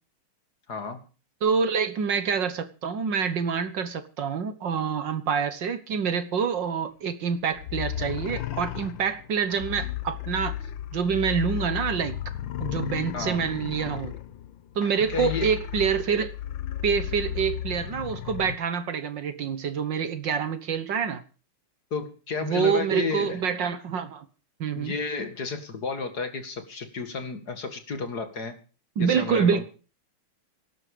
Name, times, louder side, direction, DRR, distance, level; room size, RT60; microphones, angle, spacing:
voice 1, 0.7-1.0 13.1-13.4 15.1-15.5 21.9-23.4 24.8-28.6 29.0-29.6, left 4 dB, 45° left, 8 dB, 2.4 m, -32 dB
voice 2, 1.4-10.5 10.9-12.2 12.6-14.1 14.8-16.3 16.8-21.2 22.4-24.3 24.6-25.0 29.0-29.6, right 6 dB, 60° right, 12 dB, 1.7 m, -26 dB
sound 1, 7.5-18.6, left 12 dB, 65° left, 1.5 m, -34 dB
18.0 x 12.0 x 5.1 m, 0.36 s
omnidirectional pair, 2.4 m